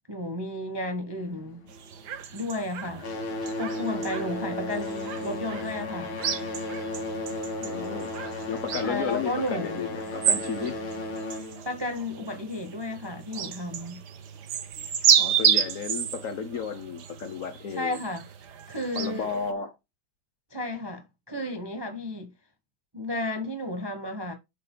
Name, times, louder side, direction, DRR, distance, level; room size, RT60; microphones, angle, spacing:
voice 1, 0.1-1.7 2.3-3.1 3.5-6.2 8.8-9.8 11.6-14.0 17.7-18.2 18.7-19.3 20.5-22.3 22.9-24.3, left 1 dB, 25° right, 0.5 m, -33 dB
sound 1, 1.2-2.5 2.8-13.1 14.0-14.1 14.8-14.9 15.5-15.6, left 2 dB, 85° left, 2.3 m, -35 dB
sound 2, 1.7-19.5, right 8 dB, 60° right, 1.4 m, -31 dB
voice 2, 7.6-8.1 8.5-10.8 15.2-18.0 18.9-19.7, left 6 dB, 55° left, 1.0 m, -33 dB
9.4 x 6.8 x 2.2 m
omnidirectional pair, 2.2 m